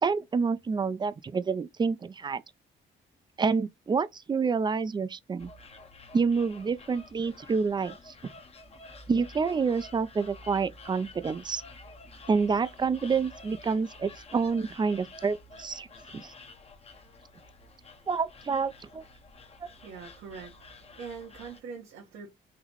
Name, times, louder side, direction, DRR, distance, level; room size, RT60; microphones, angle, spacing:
voice 1, 0.0-2.4 3.4-5.5 6.1-8.1 9.1-11.6 12.3-15.9 16.1-16.3 18.1-19.0 19.6-19.7, right 5 dB, 20° right, 0.4 m, -28 dB
sound 1, 5.4-21.6, left 2 dB, 30° left, 0.7 m, -50 dB
voice 2, 19.7-22.3, right 5 dB, 85° right, 1.2 m, -43 dB
4.0 x 2.9 x 2.9 m
cardioid pair, 90°, 20 cm